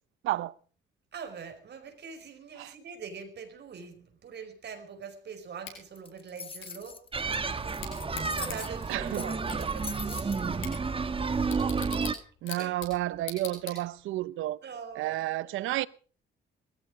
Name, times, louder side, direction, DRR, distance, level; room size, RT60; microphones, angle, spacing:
voice 1, 1.1-7.0 8.3-10.7 12.6-12.7 13.7-13.8 14.6-15.4, right 6 dB, 60° right, 5.1 m, -43 dB
Bicycle / Tick, 5.6-14.2, left 7 dB, 85° left, 6.5 m, -45 dB
sound 1, 6.0-10.8, left 4 dB, 25° left, 1.6 m, -42 dB
sound 2, 7.1-12.1, right 4 dB, 25° right, 1.5 m, -31 dB
voice 2, 8.9-9.3 12.4-14.6 14.9-15.9, right 16 dB, 90° right, 0.8 m, -31 dB
20.0 x 14.5 x 4.9 m
cardioid pair, 90°, 20 cm